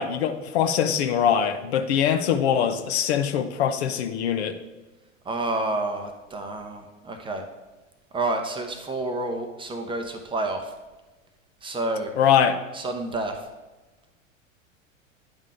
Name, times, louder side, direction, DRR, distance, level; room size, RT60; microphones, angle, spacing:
voice 1, 0.0-4.6 12.2-12.5, left 8 dB, 55° left, 9 dB, 0.7 m, -22 dB
voice 2, 5.2-7.4 8.1-10.7 11.6-12.1 12.7-13.5, right 2 dB, 15° right, 5 dB, 0.6 m, -29 dB
9.8 x 3.7 x 4.9 m, 1.2 s
figure-of-eight pair, 85°, 39 cm